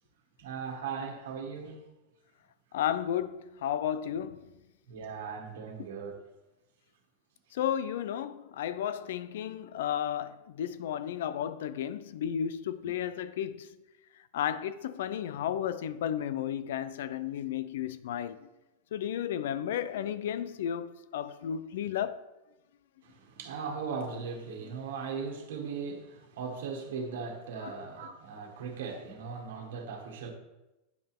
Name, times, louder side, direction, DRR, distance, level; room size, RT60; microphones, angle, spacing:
voice 1, 0.4-1.9 4.9-6.2 23.0-30.3, right 5 dB, 75° right, 1.7 m, -38 dB
voice 2, 2.7-4.4 7.5-13.7 14.3-18.5 18.9-22.2 27.6-27.7, left 10 dB, 70° left, 0.5 m, -33 dB
9.3 x 5.5 x 3.6 m
supercardioid pair, 175°, 0 cm